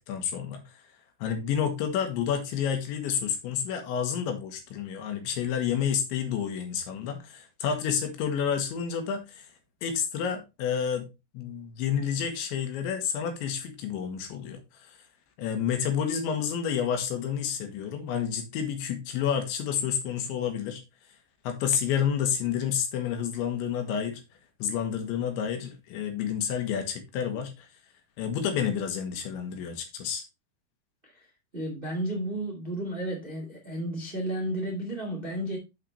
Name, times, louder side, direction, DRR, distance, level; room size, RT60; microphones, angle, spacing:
voice 1, 0.1-0.6 1.2-9.5 9.8-11.1 11.3-14.6 15.4-20.8 21.5-24.2 24.6-27.7 28.2-30.2, left 8 dB, 80° left, 3.6 m, -29 dB
voice 2, 31.5-35.6, right 1 dB, 25° right, 1.1 m, -32 dB
7.6 x 6.5 x 3.3 m
omnidirectional pair, 5.4 m